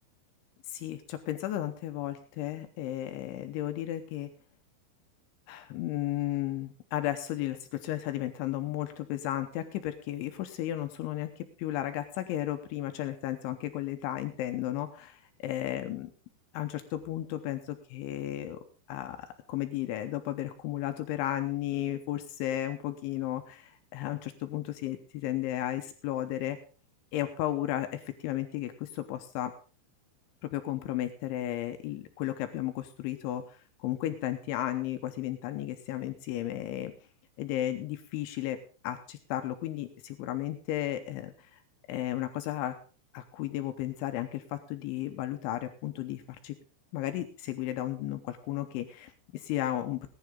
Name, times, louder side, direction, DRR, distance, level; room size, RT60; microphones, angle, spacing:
voice 1, 0.7-4.3 5.5-16.1 16.5-18.6 18.9-26.6 27.1-29.5 30.4-36.9 37.4-38.6 38.8-41.6 41.9-42.7 43.1-46.6 46.9-50.1, left 13 dB, 80° left, 7 dB, 3.1 m, -34 dB
18.0 x 10.5 x 3.8 m, 0.38 s
omnidirectional pair, 5.7 m